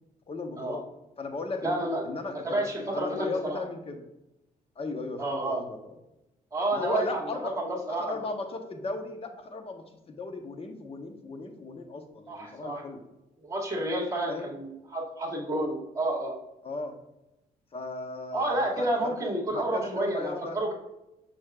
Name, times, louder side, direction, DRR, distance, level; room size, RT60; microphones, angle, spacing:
voice 1, 0.3-0.8 1.2-4.0 4.8-5.8 6.7-7.6 7.9-13.0 14.3-14.5 16.6-16.9 17.7-19.2 19.5-20.6, left 3 dB, 40° left, 5 dB, 1.1 m, -36 dB
voice 2, 1.6-2.0 2.3-3.6 5.2-5.6 6.5-8.2 12.3-12.8 13.4-16.4 18.3-20.7, right 1 dB, 20° right, -1 dB, 2.3 m, -30 dB
6.5 x 6.0 x 2.5 m, 0.91 s
cardioid pair, 85°, 15 cm